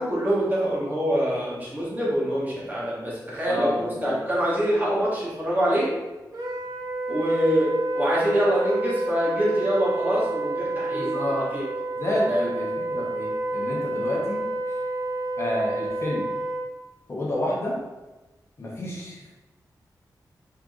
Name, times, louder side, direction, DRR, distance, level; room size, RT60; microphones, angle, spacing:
voice 1, 0.0-5.9 7.1-11.1 11.5-11.6 12.3-12.4, equal, 25° right, -7 dB, 1.3 m, -25 dB
voice 2, 3.5-4.1 11.0-11.5 12.0-14.4 15.4-16.2 17.1-17.8 18.6-19.3, left 1 dB, 35° left, -4 dB, 0.9 m, -29 dB
Wind instrument woodwind instrument, 6.3-16.7, right 2 dB, 60° right, 0.8 m, -29 dB
4.4 x 3.6 x 2.5 m, 1.1 s
wide cardioid pair, 125°, 7 cm